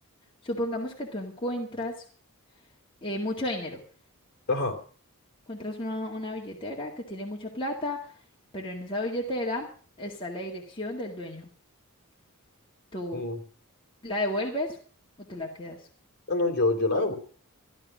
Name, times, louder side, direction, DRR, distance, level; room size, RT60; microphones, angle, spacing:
voice 1, 0.4-2.0 3.0-3.8 5.5-8.1 8.5-9.7 10.0-11.5 12.9-13.2 14.0-14.8 15.3-15.8, left 1 dB, 25° left, -2 dB, 2.1 m, -32 dB
voice 2, 16.3-17.1, left 2 dB, 45° left, 3 dB, 3.2 m, -25 dB
14.0 x 12.0 x 6.2 m, 0.43 s
head